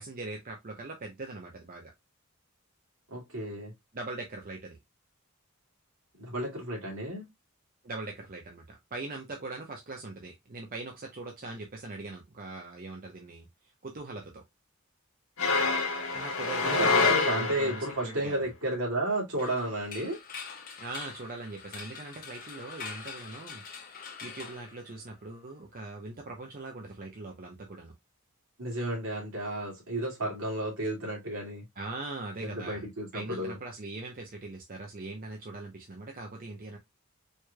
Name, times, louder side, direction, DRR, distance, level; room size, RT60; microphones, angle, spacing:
voice 1, 0.0-1.9 3.9-4.8 7.8-13.5 13.8-14.4 16.1-18.3 20.8-23.6 24.2-27.9 31.8-32.8 33.1-36.8, right 2 dB, 40° right, 0.7 m, -41 dB
voice 2, 3.1-3.7 6.2-7.3 16.6-20.2 28.6-31.6 32.4-33.6, right 1 dB, 75° right, 2.3 m, -32 dB
sound 1, 15.4-18.0, left 4 dB, 75° left, 1.2 m, -27 dB
sound 2, 19.4-25.4, left 5 dB, 40° left, 1.1 m, -44 dB
4.5 x 3.2 x 2.2 m
head